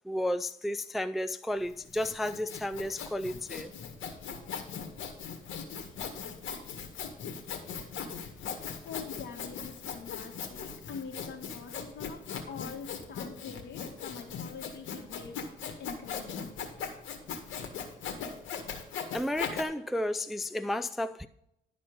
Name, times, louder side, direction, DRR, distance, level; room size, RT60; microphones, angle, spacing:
voice 1, 0.1-3.7 19.1-21.3, left 1 dB, ahead, 0.3 m, -32 dB
Sawing, 1.6-19.6, left 6 dB, 80° left, 1.8 m, -39 dB
voice 2, 8.4-15.3 15.8-16.5, left 6 dB, 65° left, 2.2 m, -45 dB
11.5 x 4.2 x 6.7 m
cardioid pair, 90°, 20 cm